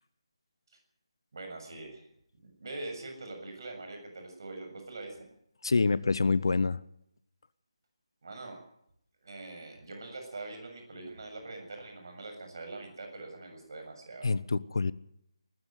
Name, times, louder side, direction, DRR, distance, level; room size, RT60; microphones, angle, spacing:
voice 1, 1.3-2.1 2.4-5.3 8.2-8.6 9.2-14.3, right 2 dB, 45° right, 4 dB, 7.2 m, -43 dB
voice 2, 5.6-6.8 14.2-14.9, left 4 dB, 50° left, 19 dB, 0.8 m, -26 dB
20.0 x 14.5 x 9.4 m, 0.73 s
figure-of-eight pair, 155°, 3 cm